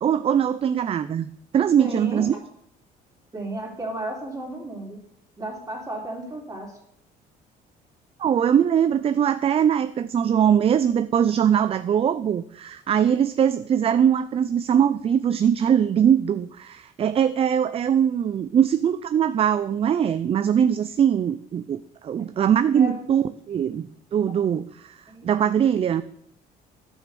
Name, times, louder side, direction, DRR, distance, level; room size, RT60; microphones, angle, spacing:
voice 1, 0.0-2.3 8.2-26.0, right 8 dB, 35° right, 13 dB, 0.4 m, -21 dB
voice 2, 1.8-2.3 3.3-5.0 5.4-6.8 22.8-23.0 25.1-25.4, right 1 dB, 20° right, 0 dB, 3.5 m, -33 dB
10.5 x 6.3 x 6.8 m, 0.73 s
cardioid pair, 110°, 17 cm